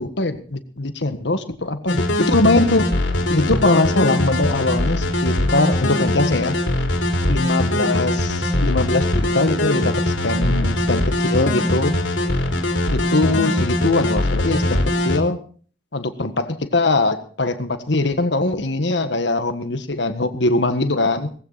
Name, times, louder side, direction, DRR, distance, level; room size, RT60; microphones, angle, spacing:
voice 1, 0.0-2.9 3.3-6.6 7.3-12.0 12.9-15.4 15.9-21.3, left 2 dB, 75° left, 9 dB, 1.6 m, -21 dB
sound 1, 1.9-15.2, left 1 dB, 90° left, 3.6 m, -21 dB
18.5 x 16.0 x 4.2 m, 0.43 s
head